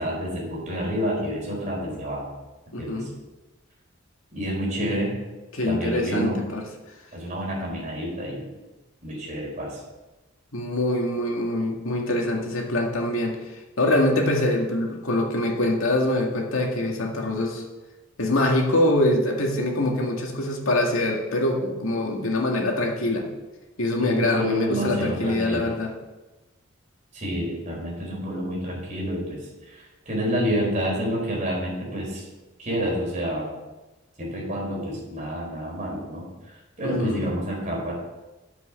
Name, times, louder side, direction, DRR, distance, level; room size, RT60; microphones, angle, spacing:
voice 1, 0.0-2.3 2.8-3.1 4.3-5.2 5.7-6.5 7.1-8.5 9.0-9.8 24.0-25.7 27.1-32.2 32.6-33.5 34.2-36.2 36.8-37.9, equal, 35° right, -3 dB, 4.3 m, -28 dB
voice 2, 2.7-3.1 5.5-6.6 10.5-13.4 13.8-17.6 18.2-23.3 23.8-25.9 36.8-37.2, left 1 dB, 80° left, 1 dB, 2.1 m, -24 dB
9.7 x 7.7 x 7.0 m, 1.1 s
head